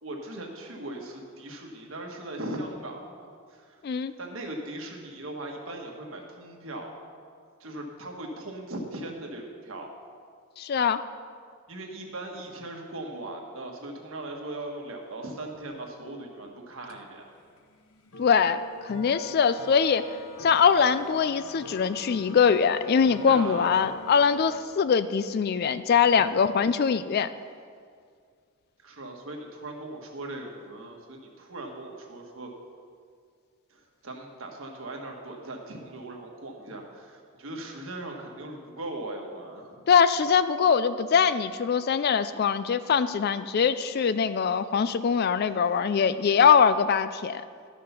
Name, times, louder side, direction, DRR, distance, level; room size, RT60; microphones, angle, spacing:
voice 1, 0.0-3.8 4.2-6.9 7.6-9.9 11.7-17.2 23.2-23.7 26.1-26.2 28.8-32.5 33.7-39.8, right 1 dB, 65° right, 1 dB, 1.4 m, -39 dB
voice 2, 10.6-11.0 18.2-20.0 20.4-27.3 39.9-47.4, left 6 dB, 45° left, 13 dB, 0.3 m, -22 dB
sound 1, 15.6-24.6, left 2 dB, 75° left, 0.9 m, -45 dB
12.0 x 6.3 x 5.7 m, 2.1 s
head